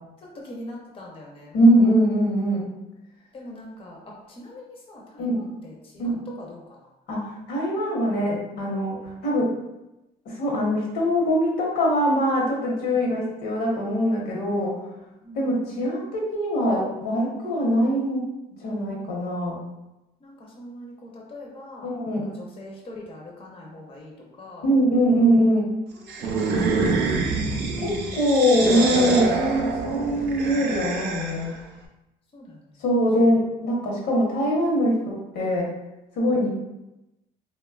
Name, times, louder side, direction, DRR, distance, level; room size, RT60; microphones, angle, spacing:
voice 1, 0.2-1.6 3.3-6.9 12.8-13.2 14.6-14.8 15.2-15.8 20.2-24.7 25.9-27.3 32.3-32.8, left 1 dB, 35° left, -2 dB, 0.6 m, -43 dB
voice 2, 1.5-2.7 5.2-5.4 6.0-6.2 7.1-9.5 10.2-14.8 15.3-18.3 18.6-19.6 21.8-22.3 24.6-25.7 27.8-31.6 32.8-35.7 36.2-36.5, equal, 80° left, -3 dB, 0.9 m, -22 dB
sound 1, 26.1-31.6, right 4 dB, 75° right, 0.5 m, -26 dB
3.1 x 2.2 x 2.3 m, 0.96 s
cardioid pair, 110°, 17 cm